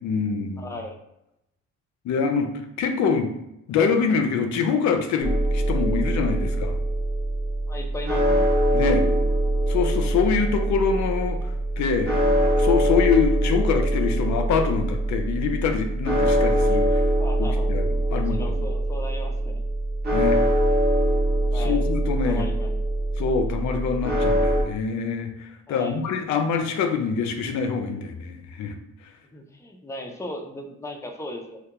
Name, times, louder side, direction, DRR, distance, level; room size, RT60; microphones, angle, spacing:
voice 1, 0.0-0.7 2.0-2.5 2.8-3.3 3.7-6.7 8.7-9.1 9.7-11.4 11.8-12.2 12.4-17.0 17.4-18.6 20.1-20.4 21.5-22.5 23.2-28.7, left 6 dB, 70° left, 6 dB, 0.5 m, -25 dB
voice 2, 0.6-1.0 7.7-8.4 17.2-17.7 18.1-19.6 21.5-21.8 22.3-22.8 25.7-26.1 29.3-31.6, left 1 dB, 10° left, 2 dB, 0.4 m, -37 dB
sound 1, 5.2-24.6, right 1 dB, 35° right, 0.9 m, -23 dB
2.2 x 2.2 x 2.8 m, 0.84 s
cardioid pair, 90°, 30 cm